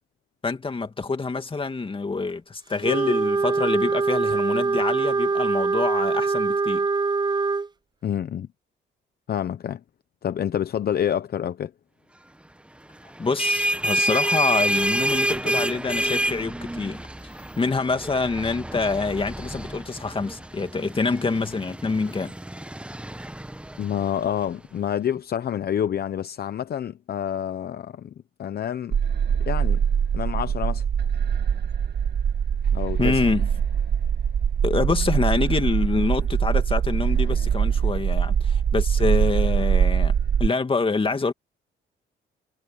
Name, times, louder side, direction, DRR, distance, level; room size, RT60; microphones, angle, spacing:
voice 1, 0.4-6.9 13.2-17.0 17.6-22.3 33.0-33.5 34.6-40.1 40.4-41.3, left 4 dB, 25° left, 2.3 m, -26 dB
Wind instrument woodwind instrument, 2.8-7.7, right 4 dB, 20° right, 0.6 m, -23 dB
voice 2, 8.0-8.5 9.3-9.8 10.2-11.7 23.8-28.1 28.4-29.0 29.5-29.8 30.1-30.8 32.7-33.2 39.6-39.7, left 9 dB, 50° left, 0.8 m, -28 dB
auto horn honk angry driver pass doppler India, 13.1-24.5, right 1 dB, 5° right, 1.0 m, -28 dB
sound 1, 28.9-40.5, right 7 dB, 55° right, 2.0 m, -23 dB
cardioid pair, 90°, 20 cm